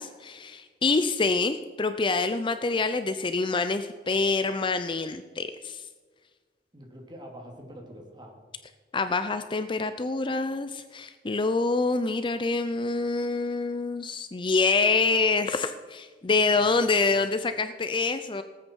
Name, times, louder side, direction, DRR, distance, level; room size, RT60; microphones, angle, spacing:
voice 1, 0.0-5.8 8.9-18.4, left 3 dB, 30° left, 10 dB, 0.5 m, -26 dB
voice 2, 6.7-8.4 16.5-16.8 17.1-17.2, equal, 25° right, 1 dB, 2.6 m, -45 dB
19.0 x 8.8 x 4.6 m, 1.5 s
head